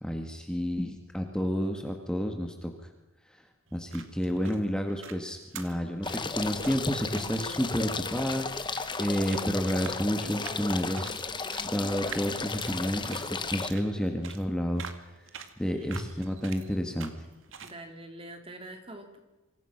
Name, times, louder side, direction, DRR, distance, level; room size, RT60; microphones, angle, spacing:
voice 1, 0.0-2.7 3.3-3.4 3.7-11.2 11.6-14.8 15.6-17.1, equal, 5° left, 3 dB, 2.0 m, -30 dB
sound 1, 3.7-17.8, right 6 dB, 65° right, 2.2 m, -48 dB
sound 2, 6.0-13.7, left 4 dB, 25° left, 1.3 m, -34 dB
voice 2, 17.6-19.2, right 1 dB, 25° right, 5 dB, 3.4 m, -44 dB
27.0 x 26.0 x 6.1 m, 1.1 s
head